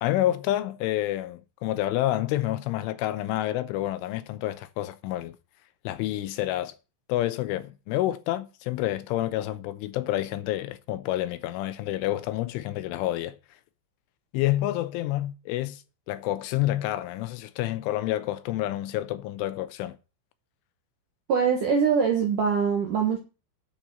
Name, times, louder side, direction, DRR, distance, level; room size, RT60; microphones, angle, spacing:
voice 1, 0.0-5.4 5.8-6.7 7.1-13.4 14.3-20.0, left 14 dB, 80° left, 3.1 m, -28 dB
voice 2, 21.3-23.2, right 6 dB, 65° right, 2.1 m, -23 dB
10.5 x 7.0 x 7.7 m
omnidirectional pair, 5.9 m